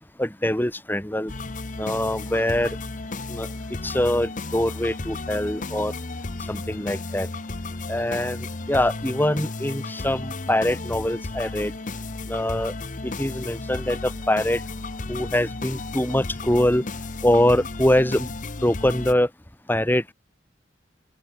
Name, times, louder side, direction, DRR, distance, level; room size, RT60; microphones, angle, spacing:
voice 1, 0.2-1.3 1.8-2.8 3.3-5.9 6.5-7.3 7.9-11.7 12.3-12.7 13.0-14.6 15.1-16.9 17.2-18.3 18.6-19.3 19.7-20.1, left 1 dB, 10° left, 1.8 m, -23 dB
sound 1, 1.3-19.1, left 3 dB, 45° left, 1.0 m, -34 dB
open air
head